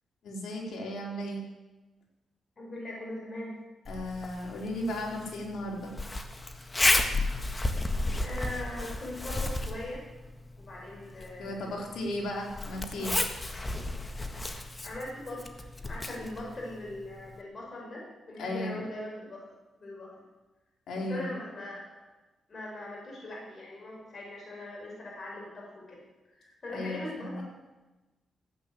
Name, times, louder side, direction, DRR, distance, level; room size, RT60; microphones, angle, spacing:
voice 1, 0.2-1.4 3.9-5.9 11.4-13.2 18.4-18.8 20.9-21.3 26.7-27.4, left 1 dB, 75° left, -1 dB, 4.0 m, -35 dB
voice 2, 2.6-3.6 8.2-10.0 10.6-11.8 14.8-19.4 19.8-20.1 21.0-21.9 22.5-26.0 26.3-27.4, left 1 dB, 40° left, -3 dB, 5.4 m, -40 dB
Zipper (clothing), 3.9-17.4, left 2 dB, 25° left, 1.6 m, -33 dB
15.5 x 8.8 x 7.7 m, 1.1 s
cardioid pair, 80°, 0 cm